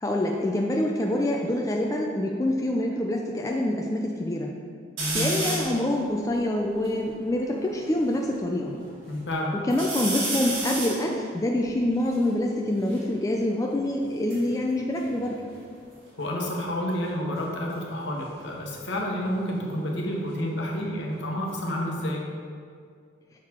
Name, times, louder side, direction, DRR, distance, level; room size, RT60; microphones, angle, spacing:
voice 1, 0.0-4.5 5.1-8.8 9.7-15.4, left 1 dB, 15° left, 0 dB, 0.3 m, -26 dB
voice 2, 5.0-5.3 9.1-9.5 16.2-22.2, equal, 70° left, -1 dB, 1.0 m, -29 dB
sound 1, 5.0-5.8 6.4-6.5 6.6-8.2 8.7-9.3 9.7-13.1 14.0-15.9 16.2-16.7 18.2-20.9 21.2-22.0, right 2 dB, 90° right, 1.5 m, -34 dB
6.2 x 3.9 x 4.3 m, 2.2 s
head